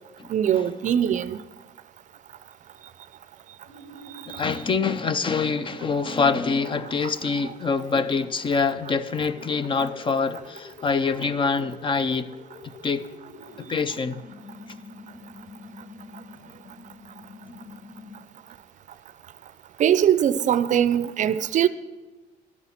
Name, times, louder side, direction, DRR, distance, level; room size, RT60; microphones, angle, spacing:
voice 1, 0.3-1.4 4.3-4.4 19.8-21.7, right 9 dB, 45° right, 0.5 m, -21 dB
sound 1, 3.6-18.5, left 2 dB, 80° left, 1.8 m, -47 dB
voice 2, 4.3-12.3 12.6-13.1 13.6-14.2, left 5 dB, 30° left, 0.5 m, -25 dB
12.0 x 9.8 x 5.9 m
cardioid pair, 110°, 17 cm